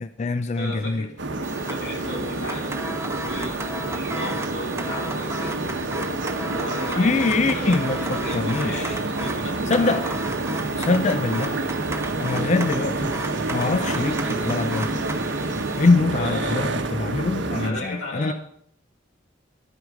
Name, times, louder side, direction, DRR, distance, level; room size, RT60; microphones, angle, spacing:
voice 1, 0.0-1.1 7.0-9.0 9.7-10.0 10.8-11.5 12.2-13.1 13.5-15.0 15.8-18.3, left 3 dB, 35° left, 10 dB, 0.4 m, -23 dB
voice 2, 0.5-1.1 1.7-5.6 6.4-10.2 16.1-16.8 17.6-18.3, left 1 dB, 90° left, -3 dB, 5.9 m, -35 dB
sound 1, 1.2-17.7, right 2 dB, 65° right, 1.0 m, -28 dB
sound 2, 1.4-15.9, right 2 dB, 15° right, 1.0 m, -35 dB
12.5 x 9.5 x 4.8 m, 0.68 s
head